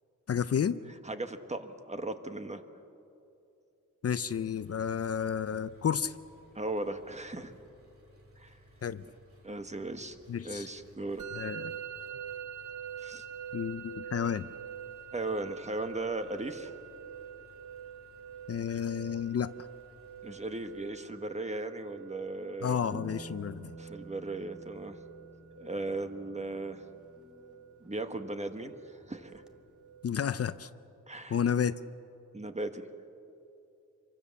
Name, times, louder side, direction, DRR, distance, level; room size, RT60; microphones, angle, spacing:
voice 1, 0.3-0.8 4.0-6.1 8.8-9.0 10.3-10.7 11.3-11.7 13.5-14.5 18.5-19.5 22.6-23.7 30.0-30.7 31.3-31.8, left 8 dB, 55° left, 14 dB, 0.6 m, -31 dB
voice 2, 1.0-2.6 6.5-7.5 8.4-8.6 9.4-10.2 10.4-11.3 13.0-13.2 15.1-16.7 20.2-23.0 23.8-25.0 25.6-26.8 27.8-29.4 31.1-31.4 32.3-32.8, right 2 dB, 20° right, 8 dB, 1.4 m, -37 dB
Engine, 4.1-20.8, equal, 45° right, 3.4 m, -61 dB
Musical instrument, 11.2-30.1, right 9 dB, 75° right, 0.9 m, -46 dB
sound 1, 22.9-28.5 29.0-29.9, right 2 dB, 5° right, 1.2 m, -50 dB
27.0 x 24.0 x 7.1 m, 2.7 s
wide cardioid pair, 110°, 30 cm